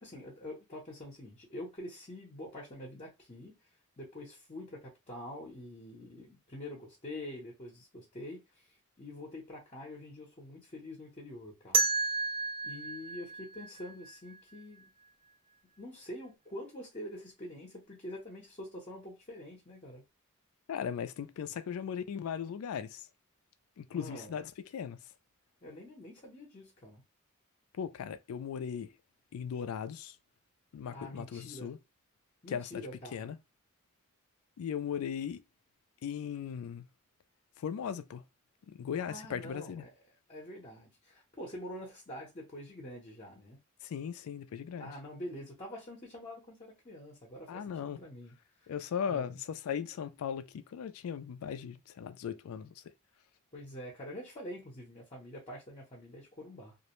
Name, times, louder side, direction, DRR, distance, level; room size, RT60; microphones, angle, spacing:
voice 1, 0.0-3.5 4.0-11.9 12.6-14.9 15.8-20.0 23.9-24.4 25.6-27.0 30.9-31.7 32.4-33.3 39.0-39.9 40.3-43.6 44.8-48.3 49.1-49.3 53.5-56.8, left 1 dB, 30° left, 0.7 m, -46 dB
sound 1, 11.7-14.6, right 4 dB, 25° right, 0.3 m, -32 dB
voice 2, 20.7-23.1 23.8-25.0 27.7-28.9 29.3-30.2 30.7-31.8 32.5-33.4 34.6-35.4 36.0-36.9 37.6-38.2 38.7-39.8 43.8-44.9 47.5-48.0 48.7-52.8, left 7 dB, 85° left, 0.3 m, -38 dB
2.5 x 2.0 x 2.9 m
head